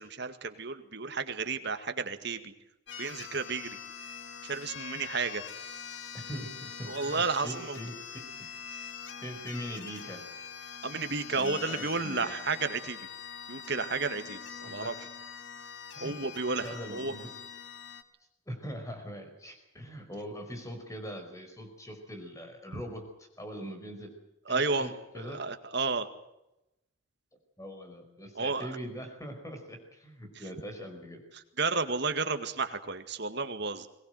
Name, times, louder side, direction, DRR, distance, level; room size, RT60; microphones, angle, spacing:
voice 1, 0.0-2.5 3.0-3.8 4.4-5.4 6.9-7.8 10.8-13.0 13.5-14.9 16.0-17.1 22.7-22.8 24.5-26.1 28.4-28.7 31.6-33.9, right 4 dB, 55° right, 8 dB, 2.0 m, -32 dB
sound 1, 2.9-18.0, left 7 dB, 60° left, 1.9 m, -43 dB
voice 2, 6.1-8.2 9.2-10.3 11.3-12.3 14.6-14.9 15.9-16.3 16.6-17.3 18.5-24.1 24.5-25.4 27.6-31.2, equal, 15° left, 5 dB, 4.9 m, -42 dB
22.5 x 19.0 x 7.9 m, 0.90 s
head